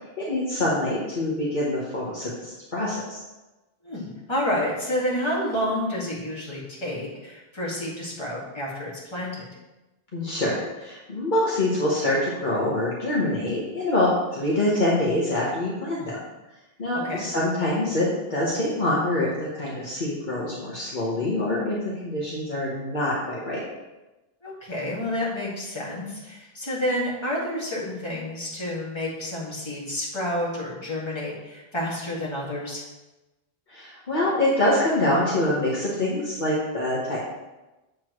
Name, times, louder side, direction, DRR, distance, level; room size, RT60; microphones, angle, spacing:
voice 1, 0.2-3.2 10.1-16.2 16.8-21.8 22.0-23.6 33.7-37.2, left 1 dB, 50° left, -7 dB, 1.4 m, -25 dB
voice 2, 3.8-9.5 16.0-16.1 17.0-17.3 24.4-32.8, left 1 dB, 25° left, -6 dB, 2.0 m, -29 dB
7.5 x 7.0 x 3.1 m, 1.1 s
omnidirectional pair, 1.1 m